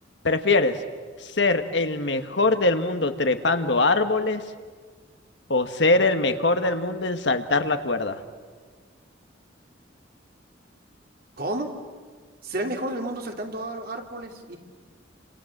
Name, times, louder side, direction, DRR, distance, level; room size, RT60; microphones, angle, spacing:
voice 1, 0.2-0.8 1.2-4.4 5.5-8.2, left 3 dB, 70° left, 8 dB, 1.6 m, -22 dB
voice 2, 11.4-11.7 12.4-14.6, right 1 dB, 55° right, 3 dB, 2.9 m, -31 dB
30.0 x 27.0 x 7.4 m, 1.5 s
head